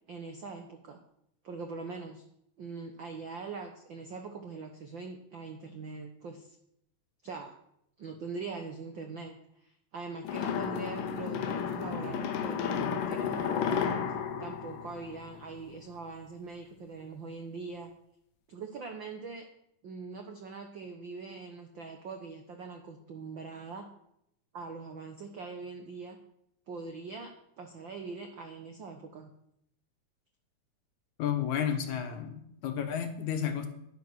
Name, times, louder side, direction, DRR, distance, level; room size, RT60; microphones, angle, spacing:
voice 1, 0.1-1.0 1.4-2.2 2.6-6.6 7.2-7.5 8.0-13.9 14.4-17.9 18.5-19.4 19.8-23.9 24.5-26.2 26.7-29.3, right 4 dB, 85° right, 5 dB, 1.0 m, -42 dB
sound 1, 10.2-15.6, left 7 dB, 85° left, 2.8 m, -32 dB
voice 2, 31.2-33.7, left 8 dB, 65° left, 6 dB, 2.5 m, -32 dB
11.0 x 10.0 x 6.2 m, 0.76 s
omnidirectional pair, 3.8 m